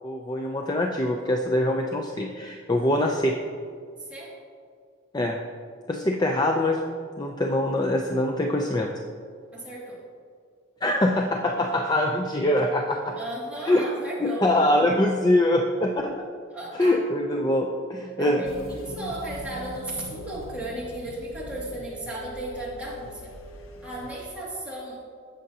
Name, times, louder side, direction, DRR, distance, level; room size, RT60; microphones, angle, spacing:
voice 1, 0.0-3.3 5.1-5.4 5.9-8.9 10.8-13.2 13.7-13.8 14.2-16.3 16.8-18.4, left 1 dB, 20° left, 2 dB, 0.4 m, -24 dB
voice 2, 4.0-4.3 9.5-10.0 13.2-14.5 16.5-17.0 18.2-23.4 23.8-25.0, right 1 dB, 5° right, -7 dB, 2.2 m, -35 dB
sound 1, 18.4-24.2, left 1 dB, 70° left, 0.7 m, -41 dB
16.5 x 6.5 x 2.8 m, 2.1 s
head